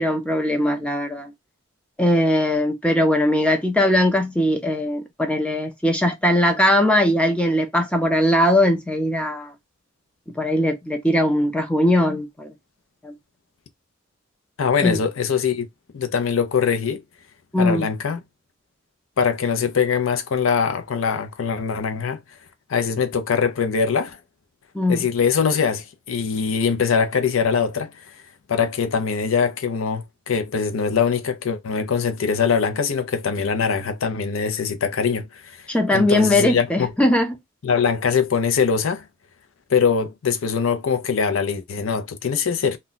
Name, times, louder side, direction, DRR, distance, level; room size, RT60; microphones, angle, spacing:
voice 1, 0.0-1.3 2.0-9.5 10.4-12.5 13.0-13.1 14.8-15.0 17.5-17.9 24.7-25.1 35.7-37.4, left 1 dB, 5° left, 0.5 m, -20 dB
voice 2, 14.6-15.7 15.9-17.0 17.6-18.2 19.2-22.2 22.7-24.2 24.9-27.9 28.5-35.3 35.9-36.9 37.6-39.0 39.7-42.8, left 6 dB, 80° left, 0.5 m, -22 dB
2.2 x 2.2 x 3.8 m
head